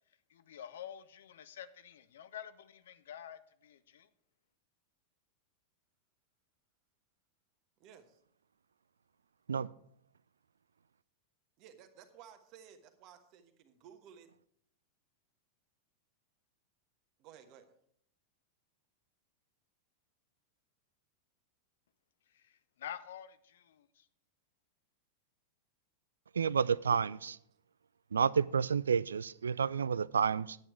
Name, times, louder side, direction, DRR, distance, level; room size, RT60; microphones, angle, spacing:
voice 1, 0.3-4.1 22.3-24.1, left 9 dB, 60° left, 0.5 m, -48 dB
voice 2, 7.8-8.2 11.6-14.3 17.2-17.7, right 8 dB, 40° right, 1.3 m, -56 dB
voice 3, 26.3-27.4 28.1-30.6, right 6 dB, 70° right, 0.3 m, -30 dB
9.8 x 8.9 x 4.5 m
figure-of-eight pair, 90°, 0 cm